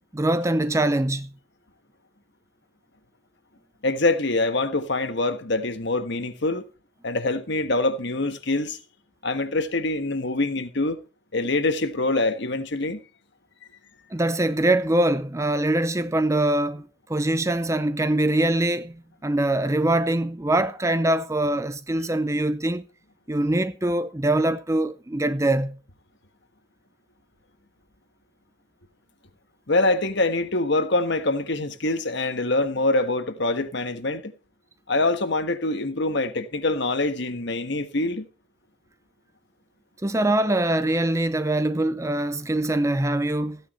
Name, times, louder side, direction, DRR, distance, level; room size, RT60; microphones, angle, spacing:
voice 1, 0.1-1.3 14.1-18.9 19.2-22.8 23.3-25.8 40.0-43.6, right 1 dB, 15° right, 0.5 m, -23 dB
voice 2, 3.8-6.6 7.0-8.8 9.2-11.0 11.3-13.0 29.7-34.3 34.9-38.3, left 2 dB, 55° left, 1.4 m, -24 dB
15.5 x 9.4 x 4.3 m
head